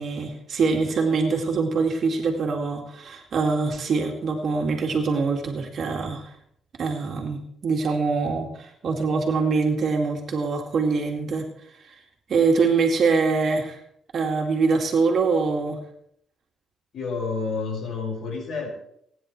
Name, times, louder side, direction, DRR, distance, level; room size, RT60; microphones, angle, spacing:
voice 1, 0.0-6.3 6.8-11.5 11.8-12.0 12.3-13.8 14.1-15.8, right 4 dB, 50° right, 1 dB, 2.2 m, -24 dB
voice 2, 16.9-18.7, left 4 dB, 55° left, 0 dB, 5.5 m, -29 dB
29.0 x 9.9 x 3.2 m, 0.71 s
cardioid pair, 145°, 0 cm